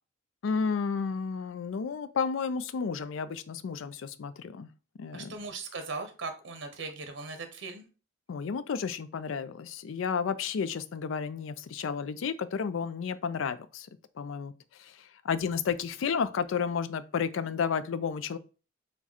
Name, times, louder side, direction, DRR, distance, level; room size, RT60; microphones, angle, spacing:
voice 1, 0.4-4.7 5.0-5.3 8.3-13.9 14.2-14.5 14.8-18.4, left 6 dB, 80° left, 0.4 m, -32 dB
voice 2, 5.1-7.8, right 4 dB, 65° right, 0.7 m, -39 dB
4.6 x 2.2 x 4.2 m
head